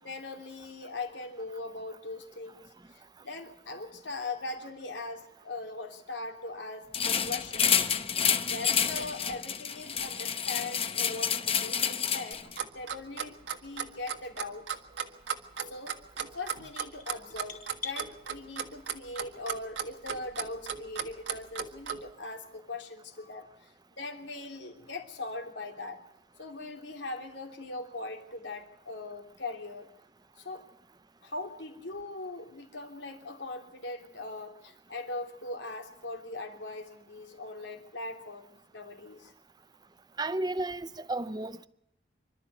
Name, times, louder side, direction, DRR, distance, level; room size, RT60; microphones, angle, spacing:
voice 1, 0.0-7.7 8.4-12.4 12.7-14.8 15.7-16.0 16.3-26.0 26.4-29.9 30.4-30.7 31.2-39.3, left 3 dB, 85° left, 3.2 m, -40 dB
sound 1, 6.9-12.6, left 7 dB, 35° left, 1.0 m, -29 dB
Clock, 12.3-22.0, right 8 dB, 90° right, 1.6 m, -35 dB
sound 2, 16.1-18.0, left 3 dB, 50° left, 3.7 m, -43 dB
voice 2, 40.2-41.7, right 2 dB, 25° right, 0.8 m, -33 dB
26.0 x 12.5 x 8.2 m
head